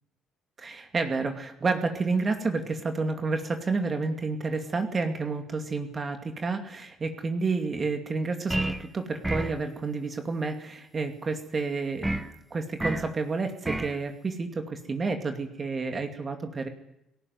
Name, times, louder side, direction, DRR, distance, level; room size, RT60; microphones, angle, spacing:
voice 1, 0.6-12.2 12.5-16.7, right 4 dB, 30° right, 5 dB, 2.4 m, -30 dB
sound 1, 8.5-8.9 9.2-9.6 12.0-12.3 12.8-13.1 13.6-14.0, right 1 dB, 10° right, 1.4 m, -29 dB
19.0 x 17.5 x 9.5 m, 0.84 s
cardioid pair, 120°, 0 cm